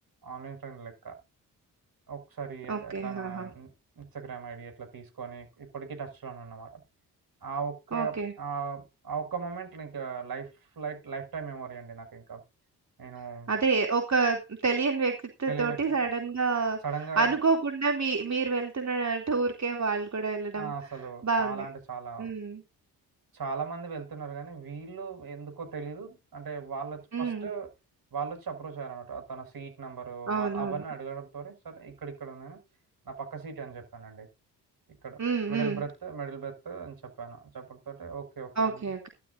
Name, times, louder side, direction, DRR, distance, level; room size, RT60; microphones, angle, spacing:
voice 1, 0.2-1.2 2.1-6.8 7.4-12.4 13.0-13.5 15.5-15.8 16.8-17.3 20.5-22.3 23.3-27.7 28.1-32.6 33.0-34.3 35.0-35.2 35.5-38.9, right 5 dB, 55° right, 6 dB, 6.0 m, -38 dB
voice 2, 2.7-3.5 7.9-8.3 13.5-16.8 17.2-20.7 21.2-21.6 22.2-22.6 27.1-27.5 30.3-30.8 35.2-35.8 38.6-39.1, right 4 dB, 40° right, 3 dB, 3.0 m, -28 dB
16.0 x 12.5 x 2.7 m, 0.28 s
supercardioid pair, 55°, 41 cm